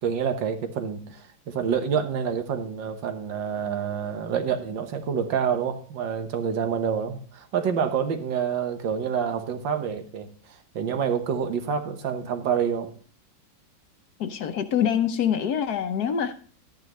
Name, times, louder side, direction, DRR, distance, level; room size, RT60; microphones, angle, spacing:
voice 1, 0.0-12.9, right 7 dB, 80° right, 7 dB, 1.9 m, -27 dB
voice 2, 14.2-16.3, left 8 dB, 65° left, 9 dB, 1.2 m, -25 dB
12.0 x 9.8 x 3.1 m, 0.43 s
omnidirectional pair, 2.0 m